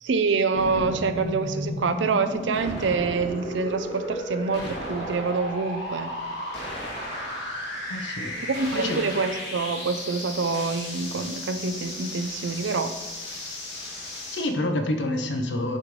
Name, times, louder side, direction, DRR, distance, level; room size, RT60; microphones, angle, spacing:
voice 1, 0.0-6.1 8.4-12.9, right 4 dB, 80° right, 10 dB, 0.5 m, -26 dB
sound 1, 0.5-14.5, equal, 60° left, 1.9 m, -34 dB
voice 2, 7.9-8.3 8.7-9.0 14.3-15.8, left 1 dB, 75° left, 6 dB, 0.8 m, -27 dB
7.7 x 3.2 x 5.2 m, 1.2 s
head